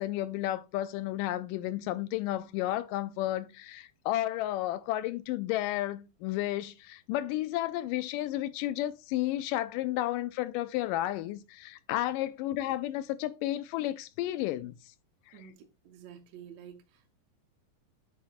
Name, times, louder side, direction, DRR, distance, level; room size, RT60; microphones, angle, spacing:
voice 1, 0.0-14.7 15.3-15.5, left 14 dB, 80° left, 2.2 m, -32 dB
voice 2, 15.3-17.2, right 9 dB, 65° right, 1.8 m, -50 dB
8.5 x 4.5 x 4.2 m
omnidirectional pair, 4.0 m